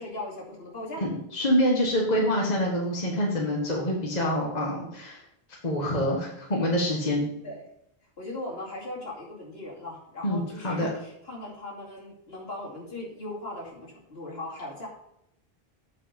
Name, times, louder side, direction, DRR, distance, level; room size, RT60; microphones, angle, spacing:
voice 1, 0.0-1.0 7.4-7.6 8.2-14.9, left 1 dB, 75° left, -4 dB, 2.9 m, -38 dB
voice 2, 1.0-5.2 5.6-7.2 10.2-10.9, equal, 45° left, -2 dB, 1.6 m, -26 dB
8.6 x 5.2 x 5.1 m, 0.77 s
omnidirectional pair, 1.0 m